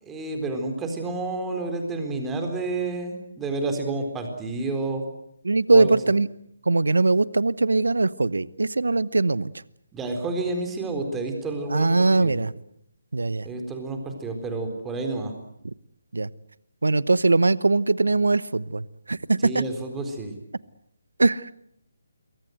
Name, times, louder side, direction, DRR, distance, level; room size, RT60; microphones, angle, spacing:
voice 1, 0.1-5.0 5.7-5.9 9.9-12.4 13.4-15.3 19.4-20.3, right 3 dB, 10° right, 4 dB, 4.1 m, -30 dB
voice 2, 5.4-6.3 6.6-9.5 11.7-12.5 13.1-13.5 16.1-16.3 16.8-19.6 21.2-21.5, right 3 dB, 70° right, 20 dB, 1.0 m, -21 dB
27.0 x 23.0 x 7.9 m, 0.73 s
figure-of-eight pair, 145°, 0 cm